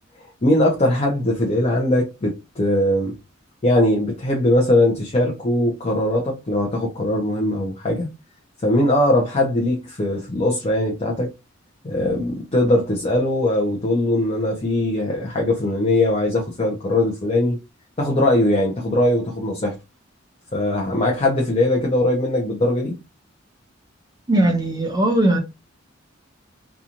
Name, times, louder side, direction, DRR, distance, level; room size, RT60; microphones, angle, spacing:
voice 1, 0.4-3.1 3.6-8.1 8.6-11.3 11.8-17.6 18.0-19.8 20.5-23.0, left 1 dB, 30° left, 0.6 m, -20 dB
voice 2, 24.3-25.4, right 1 dB, 20° right, 0.4 m, -18 dB
2.8 x 2.3 x 2.5 m
head